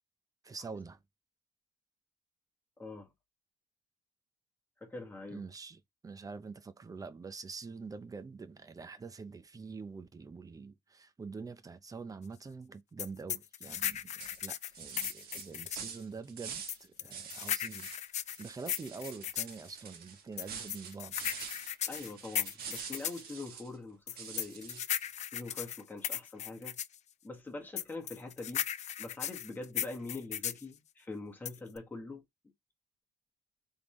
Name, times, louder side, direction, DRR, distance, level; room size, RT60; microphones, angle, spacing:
voice 1, 0.4-1.0 5.3-21.2, right 4 dB, 20° right, 0.7 m, -46 dB
voice 2, 2.8-3.1 4.8-5.4 21.9-24.8 25.3-26.8 27.2-28.6 29.0-32.2, left 3 dB, 10° left, 1.5 m, -44 dB
sound 1, 13.0-15.9 16.7-19.6 20.4-23.2 24.1-27.0 27.8-30.6 31.5-31.8, left 10 dB, 45° left, 0.4 m, -36 dB
sound 2, 13.7-13.9 14.2-16.8 17.1-18.0 18.3-23.7 24.2-25.1, right 7 dB, 65° right, 1.3 m, -46 dB
3.8 x 3.5 x 3.2 m
cardioid pair, 110°, 17 cm